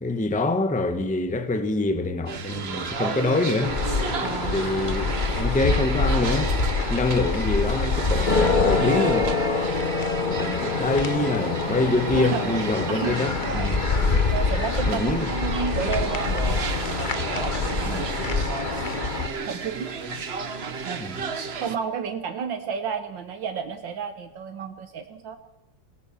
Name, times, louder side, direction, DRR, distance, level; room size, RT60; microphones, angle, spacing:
voice 1, 0.0-3.8 4.5-6.5 6.9-9.3 10.3-14.3 14.8-15.3 17.8-18.2 18.7-18.9 21.0-21.2, left 2 dB, 5° left, 1.0 m, -26 dB
sound 1, 2.3-21.8, right 5 dB, 40° right, 1.2 m, -33 dB
sound 2, 3.6-19.3, left 4 dB, 30° left, 1.2 m, -25 dB
voice 2, 4.2-4.6 12.1-13.2 14.3-16.8 17.8-18.1 19.5-19.9 20.8-21.0 21.6-25.4, right 6 dB, 80° right, 1.9 m, -31 dB
22.0 x 18.0 x 7.2 m
omnidirectional pair, 2.0 m